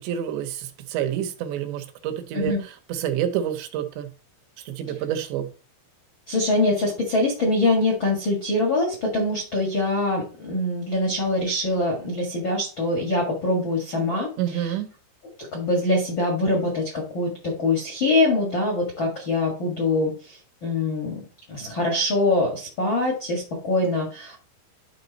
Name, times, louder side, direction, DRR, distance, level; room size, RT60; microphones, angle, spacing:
voice 1, 0.0-2.5 2.9-4.1 4.6-5.5 14.4-14.9, right 10 dB, 80° right, 7 dB, 3.0 m, -28 dB
voice 2, 6.3-14.7 15.5-21.2 21.5-24.4, left 2 dB, 70° left, 0 dB, 1.1 m, -24 dB
11.5 x 4.2 x 4.0 m, 0.38 s
omnidirectional pair, 5.3 m